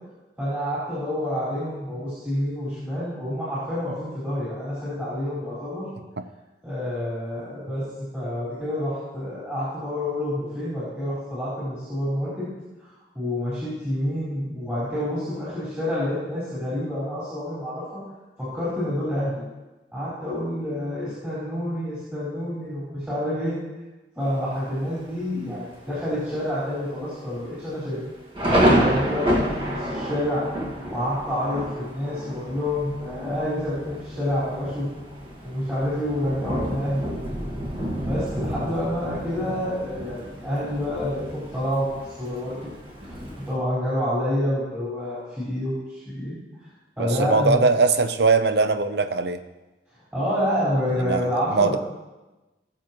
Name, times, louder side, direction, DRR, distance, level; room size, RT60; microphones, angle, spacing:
voice 1, 0.4-5.8 6.6-7.8 8.1-12.4 12.8-18.0 18.4-19.3 19.9-23.6 24.1-28.0 28.8-30.5 30.9-34.9 35.4-37.2 38.0-42.5 43.0-46.3 47.0-47.6 50.1-51.8, left 1 dB, 10° right, -12 dB, 4.6 m, -28 dB
Thunder, 24.2-24.8 25.3-25.4 25.7-26.1 26.5-26.6 27.3-43.5, equal, 30° right, 1.8 m, -29 dB
voice 2, 47.0-49.4 51.0-51.8, right 4 dB, 65° right, 10 dB, 0.7 m, -21 dB
20.5 x 7.4 x 3.1 m, 1.1 s
head